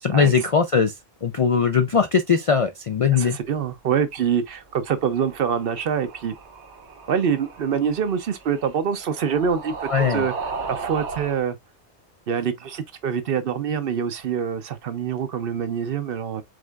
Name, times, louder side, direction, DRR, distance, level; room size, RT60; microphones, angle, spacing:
voice 1, 0.0-0.9 1.2-3.4 9.9-10.2, left 6 dB, 55° left, 0.4 m, -20 dB
voice 2, 3.1-6.4 7.1-10.3 10.7-11.6 12.3-16.4, right 7 dB, 60° right, 0.8 m, -25 dB
sound 1, 4.7-11.4, right 4 dB, 85° right, 1.2 m, -36 dB
5.0 x 3.6 x 2.3 m
omnidirectional pair, 1.1 m